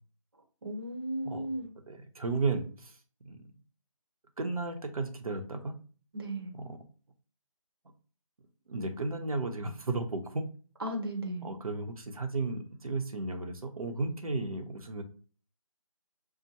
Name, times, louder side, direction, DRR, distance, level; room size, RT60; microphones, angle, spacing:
voice 1, 0.6-1.7 6.1-6.5 10.8-11.5, right 1 dB, 40° right, 1 dB, 0.9 m, -35 dB
voice 2, 1.9-2.9 3.2-3.5 4.4-5.8 6.5-6.8 8.7-10.4 11.4-15.0, right 3 dB, 85° right, 4 dB, 0.8 m, -34 dB
5.5 x 2.2 x 2.8 m, 0.39 s
figure-of-eight pair, 170°, 18 cm